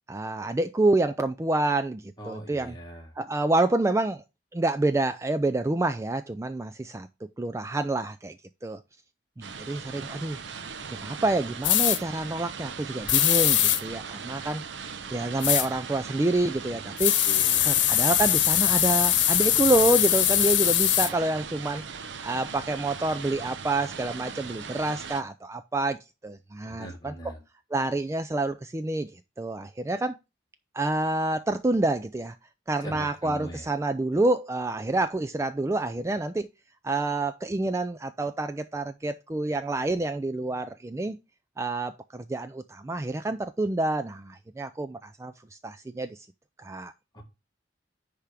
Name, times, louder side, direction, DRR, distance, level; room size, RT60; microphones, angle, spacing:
voice 1, 0.1-2.8 3.2-4.2 4.5-7.1 7.4-8.3 8.6-8.8 9.4-10.4 10.9-14.6 15.1-17.2 17.6-21.8 22.2-26.0 26.2-27.1 27.7-30.2 30.7-32.4 32.7-36.5 36.8-41.2 41.6-46.3 46.6-46.9, right 2 dB, 15° right, 0.3 m, -28 dB
voice 2, 2.2-3.1 17.3-17.8 26.7-27.4 32.8-33.7 47.1-47.2, equal, 25° left, 1.9 m, -41 dB
sound 1, 9.4-25.2, right 6 dB, 85° right, 0.8 m, -39 dB
sound 2, 11.6-12.0 13.1-13.8 15.4-15.7 17.0-21.1, left 12 dB, 85° left, 1.0 m, -22 dB
10.0 x 3.5 x 5.0 m
head